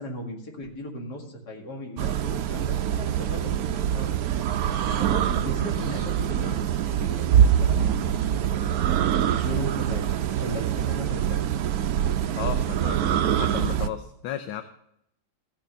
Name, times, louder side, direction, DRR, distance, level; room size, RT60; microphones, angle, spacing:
voice 1, 0.0-4.2 5.0-8.9 9.2-11.4, equal, 50° left, 0 dB, 2.5 m, -37 dB
sound 1, 2.0-13.9, right 10 dB, 90° right, 0.8 m, -24 dB
voice 2, 12.3-14.6, left 10 dB, 75° left, 8 dB, 1.4 m, -34 dB
15.0 x 5.2 x 6.6 m, 0.76 s
omnidirectional pair, 2.3 m